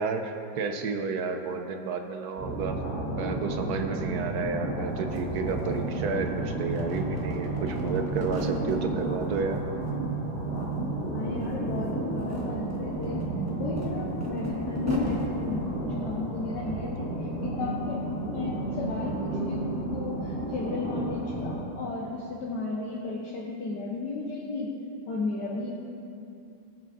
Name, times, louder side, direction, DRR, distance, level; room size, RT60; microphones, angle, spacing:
voice 1, 0.0-2.8 3.1-9.6, right 4 dB, 70° right, 5 dB, 0.9 m, -31 dB
sound 1, 2.4-21.5, right 2 dB, 10° left, 1.7 m, -32 dB
sound 2, 4.8-4.9 5.1-6.3 6.6-8.8 9.2-10.0 10.2-11.1 11.4-11.5 12.0-15.3, equal, 10° right, 0.9 m, -37 dB
voice 2, 11.1-13.2 13.6-24.7 25.1-25.7, left 3 dB, 60° left, -6 dB, 1.7 m, -34 dB
sound 3, 17.4-21.6, right 2 dB, 45° right, 0.6 m, -36 dB
19.5 x 7.2 x 2.6 m, 2.7 s
omnidirectional pair, 2.2 m